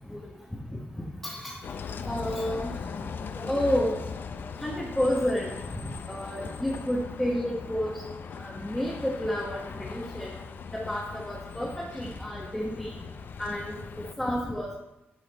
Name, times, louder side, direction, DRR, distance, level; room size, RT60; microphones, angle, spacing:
voice 1, 1.2-1.6 2.0-2.7 3.4-3.9 4.6-5.5 6.1-8.0 8.4-10.3 10.7-12.9 13.4-13.7 14.2-14.7, equal, 10° left, -4 dB, 1.1 m, -30 dB
Bus, 1.6-14.1, left 6 dB, 55° left, 0.5 m, -39 dB
12.0 x 4.2 x 4.1 m, 0.96 s
wide cardioid pair, 150°, 4 cm